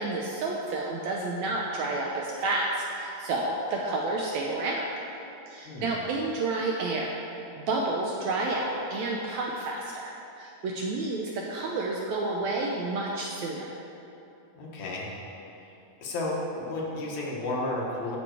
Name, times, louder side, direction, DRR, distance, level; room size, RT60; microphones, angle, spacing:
voice 1, 0.0-4.9 5.5-7.1 7.7-13.7, right 2 dB, 75° right, -1 dB, 1.7 m, -30 dB
voice 2, 14.6-15.1 16.0-18.2, left 2 dB, 65° left, -3 dB, 2.5 m, -32 dB
11.5 x 7.0 x 4.7 m, 2.9 s
omnidirectional pair, 3.8 m